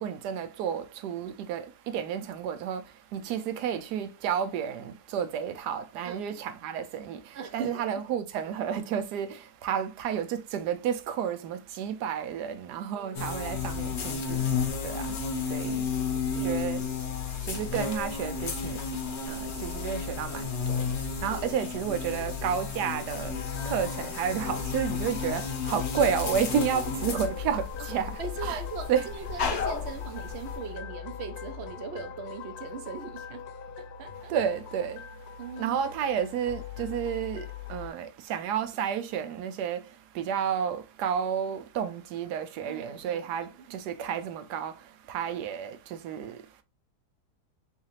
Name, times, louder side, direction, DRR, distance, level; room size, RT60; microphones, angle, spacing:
voice 1, 0.0-1.6 1.9-2.8 3.1-7.2 7.5-9.4 9.6-14.4 14.8-15.0 15.5-15.8 16.4-16.8 17.5-18.8 19.3-20.4 20.7-20.8 21.2-23.3 23.6-28.1 28.4-28.6 28.9-29.1 34.3-35.0 35.6-37.4 37.7-39.8 40.2-44.7 45.1-45.8 46.0-46.3, right 8 dB, 85° right, 1.2 m, -31 dB
voice 2, 6.0-6.4 7.3-8.0 12.9-13.7 15.7-16.6 21.5-21.6 21.9-22.0 27.8-33.4 33.8-34.3 35.4-35.8 42.7-43.8, right 5 dB, 70° right, 0.6 m, -41 dB
sound 1, 13.1-30.6, left 5 dB, 55° left, 0.9 m, -32 dB
sound 2, 23.3-37.9, left 7 dB, 75° left, 1.1 m, -41 dB
3.7 x 3.2 x 2.9 m
omnidirectional pair, 1.7 m